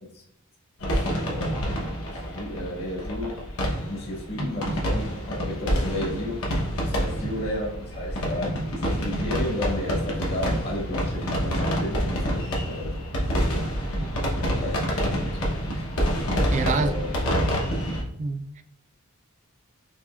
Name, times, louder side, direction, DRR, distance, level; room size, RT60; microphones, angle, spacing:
sound 1, 0.8-18.0, equal, 80° left, 1.0 m, -27 dB
voice 1, 1.2-3.3 3.9-6.5 6.8-12.9 14.6-14.8 15.3-15.7 16.3-17.1, left 1 dB, 50° left, -1 dB, 1.1 m, -33 dB
voice 2, 16.5-17.0 18.2-18.6, right 3 dB, 35° right, 9 dB, 0.3 m, -28 dB
4.8 x 2.8 x 2.4 m, 0.72 s
head